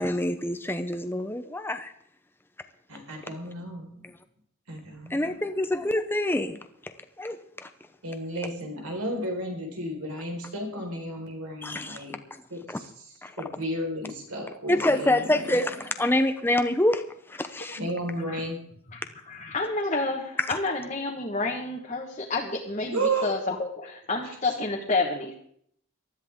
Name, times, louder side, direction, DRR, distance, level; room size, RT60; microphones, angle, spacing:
voice 1, 0.0-1.9 5.1-6.6 7.2-7.7 11.6-12.0 13.2-13.3 14.7-17.0 17.3-17.8 20.5-20.6, left 1 dB, 10° left, 0.7 m, -26 dB
voice 2, 2.9-4.0 4.7-5.4 8.0-12.2 12.5-15.7 17.8-18.6 22.9-23.3, right 1 dB, 80° right, 4.5 m, -33 dB
voice 3, 19.3-25.3, left 3 dB, 30° left, 1.4 m, -29 dB
19.5 x 13.0 x 3.7 m
head